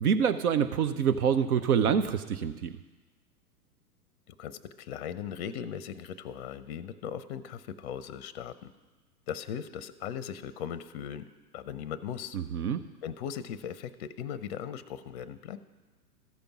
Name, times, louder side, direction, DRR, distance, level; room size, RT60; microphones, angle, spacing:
voice 1, 0.0-2.8 12.3-12.8, right 7 dB, 65° right, 10 dB, 0.7 m, -26 dB
voice 2, 4.3-8.7 9.3-11.3 11.5-12.4 13.0-15.6, left 8 dB, 45° left, 15 dB, 0.5 m, -38 dB
13.5 x 5.2 x 5.9 m, 1.2 s
hypercardioid pair, 110°, 48 cm